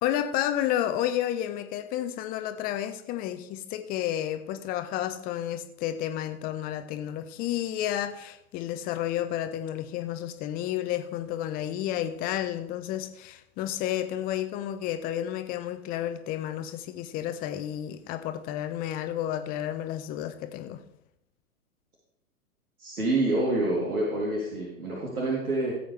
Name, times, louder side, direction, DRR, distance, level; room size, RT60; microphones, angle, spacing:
voice 1, 0.0-20.8, left 11 dB, 20° left, 0.6 m, -31 dB
voice 2, 22.8-25.7, right 2 dB, 80° right, 3.0 m, -27 dB
16.0 x 7.8 x 3.3 m
figure-of-eight pair, 110°, 44 cm